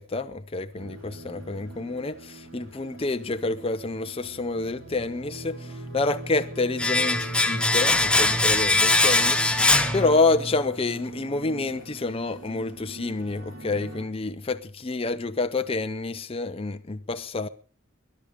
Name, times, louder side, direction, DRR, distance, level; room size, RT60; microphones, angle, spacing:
voice 1, 0.0-5.6 5.9-17.5, left 3 dB, 30° left, 0.6 m, -28 dB
sound 1, 0.7-14.0, right 2 dB, 80° right, 5.0 m, -42 dB
Domestic sounds home sounds, 6.8-10.6 10.9-11.0, left 2 dB, 5° left, 1.0 m, -22 dB
20.0 x 11.0 x 5.1 m
head